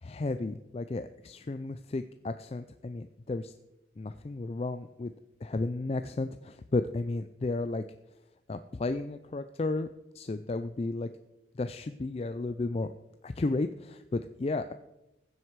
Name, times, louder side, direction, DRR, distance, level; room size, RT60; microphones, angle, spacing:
voice 1, 0.0-3.5 4.0-5.1 5.4-7.8 8.5-9.9 10.1-11.1 11.5-12.9 13.2-14.7, left 2 dB, 35° left, 10 dB, 0.4 m, -33 dB
15.5 x 7.8 x 4.7 m, 0.93 s
head